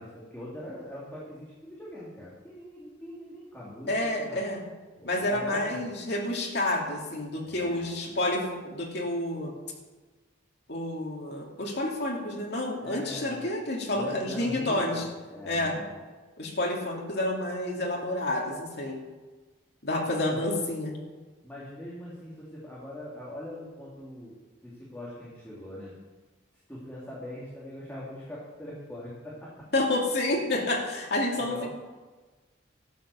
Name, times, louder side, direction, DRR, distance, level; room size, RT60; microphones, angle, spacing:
voice 1, 0.0-3.9 4.2-4.4 5.0-5.9 7.4-8.0 12.8-13.4 13.9-16.0 20.0-20.4 21.4-24.4 24.6-25.9 26.7-29.7 31.3-31.7, left 1 dB, 10° left, -7 dB, 2.7 m, -42 dB
voice 2, 3.9-4.6 5.0-9.5 10.7-15.0 15.5-15.8 16.4-19.0 19.8-21.0 29.7-31.7, left 1 dB, 60° left, -1 dB, 2.7 m, -29 dB
12.5 x 8.4 x 7.0 m, 1.3 s
head